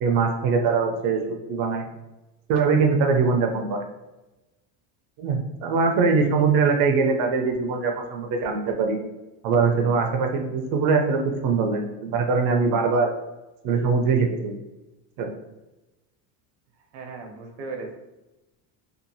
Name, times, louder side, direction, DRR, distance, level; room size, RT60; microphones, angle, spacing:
voice 1, 0.0-1.8 2.5-3.9 5.2-9.0 9.4-13.1 13.6-14.6 15.2-15.3, right 4 dB, 55° right, 3 dB, 0.5 m, -22 dB
voice 2, 16.9-17.9, right 3 dB, 85° right, 2 dB, 0.8 m, -36 dB
2.8 x 2.4 x 2.6 m, 1.0 s
cardioid pair, 125°, 44 cm